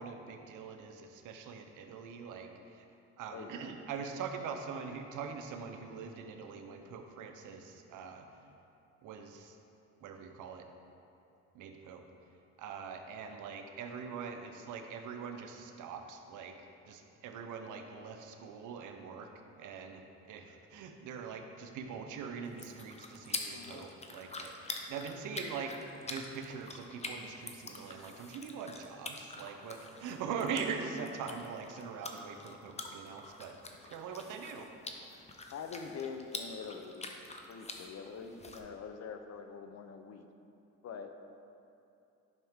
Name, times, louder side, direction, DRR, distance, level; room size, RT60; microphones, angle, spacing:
voice 1, 0.0-2.8 3.2-8.3 9.0-9.6 10.0-10.7 11.5-12.0 12.6-16.5 16.9-19.3 19.6-24.5 24.9-25.8 26.0-33.6 33.9-34.7, right 6 dB, 85° right, 5 dB, 0.8 m, -42 dB
voice 2, 3.3-3.7 23.5-23.9 35.5-37.0 37.5-40.3 40.8-41.1, left 6 dB, 60° left, 7 dB, 0.7 m, -44 dB
sound 1, 22.4-38.6, left 2 dB, 20° left, 0.8 m, -46 dB
10.5 x 5.9 x 3.6 m, 2.7 s
cardioid pair, 90°, 30 cm